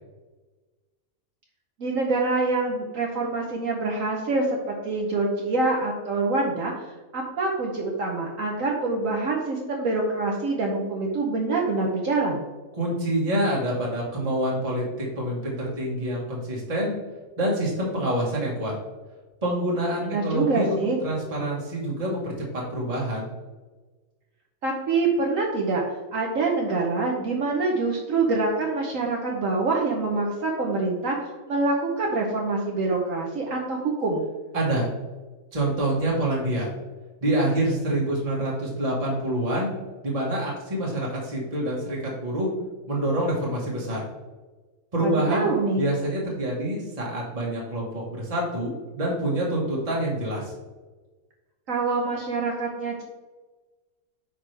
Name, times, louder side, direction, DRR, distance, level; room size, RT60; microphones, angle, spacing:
voice 1, 1.8-6.7 7.1-12.4 20.0-21.0 24.6-25.8 26.1-34.3 45.0-45.8 51.7-53.0, right 3 dB, 60° right, -1 dB, 1.3 m, -25 dB
voice 2, 12.7-16.9 17.4-18.7 19.4-23.3 34.5-34.9 35.5-36.7 37.2-39.7 40.0-42.5 42.9-44.0 44.9-50.5, right 1 dB, 25° right, -4 dB, 1.6 m, -26 dB
8.9 x 5.2 x 3.4 m, 1.3 s
omnidirectional pair, 1.6 m